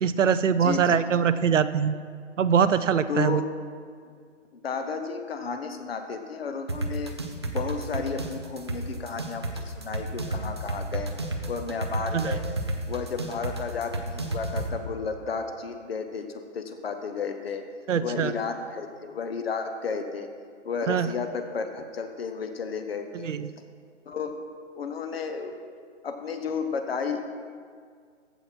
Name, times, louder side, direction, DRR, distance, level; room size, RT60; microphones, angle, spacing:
voice 1, 0.0-1.9 2.4-3.4 12.1-12.3 17.9-18.3 20.9-21.1 23.2-23.5, right 7 dB, 90° right, 13 dB, 0.6 m, -23 dB
voice 2, 0.6-1.0 3.1-3.5 4.6-7.2 7.5-11.1 11.5-12.4 12.9-17.7 18.0-20.3 20.6-23.3 24.1-24.4 24.8-25.6 26.0-27.2, left 5 dB, 55° left, 7 dB, 1.1 m, -32 dB
sound 1, 6.7-14.7, right 2 dB, 25° right, 0.4 m, -30 dB
15.0 x 6.0 x 4.4 m, 2.1 s
hypercardioid pair, 160°, 36 cm